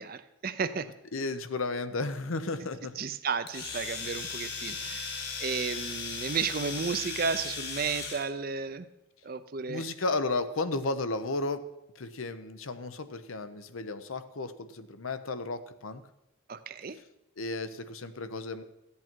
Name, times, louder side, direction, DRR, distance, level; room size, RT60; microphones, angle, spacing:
voice 1, 0.0-0.9 2.6-2.7 3.0-8.9 9.2-9.9 16.5-17.0, right 5 dB, 45° right, 11 dB, 0.5 m, -33 dB
voice 2, 1.1-2.9 5.1-5.3 9.7-11.6 12.0-16.0 17.4-18.6, left 3 dB, 85° left, 11 dB, 0.8 m, -33 dB
Domestic sounds home sounds, 3.5-8.3, left 5 dB, 55° left, 1.4 m, -37 dB
15.0 x 8.5 x 4.6 m, 0.91 s
head